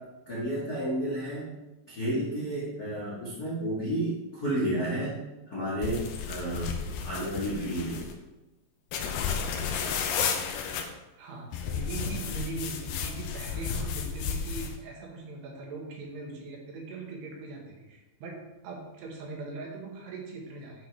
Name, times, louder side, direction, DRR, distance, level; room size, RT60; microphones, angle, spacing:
voice 1, 0.3-1.5 1.9-5.1 5.5-8.1, right 1 dB, 50° left, -6 dB, 1.0 m, -31 dB
sound 1, 5.8-8.1 8.9-10.8 11.5-14.8, left 6 dB, 75° left, 2.5 m, -32 dB
voice 2, 11.2-20.9, right 3 dB, 80° right, -1 dB, 3.6 m, -40 dB
10.5 x 6.3 x 3.5 m, 1.0 s
omnidirectional pair, 4.9 m